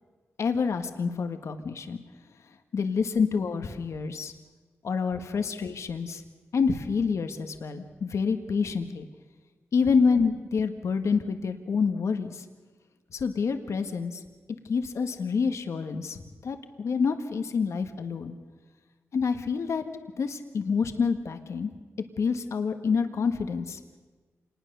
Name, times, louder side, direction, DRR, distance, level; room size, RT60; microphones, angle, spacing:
voice 1, 0.4-2.0 2.7-4.3 4.8-6.2 6.5-9.1 9.7-12.4 13.1-14.2 14.6-18.3 19.1-19.8 20.2-21.7 22.2-23.8, left 5 dB, 75° left, 7 dB, 1.6 m, -27 dB
26.5 x 20.0 x 6.8 m, 1.4 s
cardioid pair, 70°, 5 cm